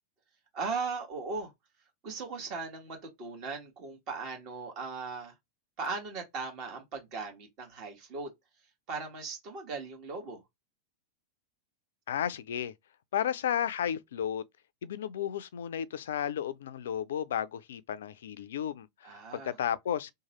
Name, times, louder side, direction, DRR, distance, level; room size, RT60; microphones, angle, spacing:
voice 1, 0.5-1.5 2.0-5.3 5.8-8.3 8.9-10.4 19.0-19.5, right 4 dB, 40° right, 1.3 m, -38 dB
voice 2, 12.1-12.7 13.1-14.4 14.8-20.1, left 9 dB, 60° left, 0.3 m, -33 dB
3.0 x 2.2 x 3.0 m
figure-of-eight pair, 90°, 0 cm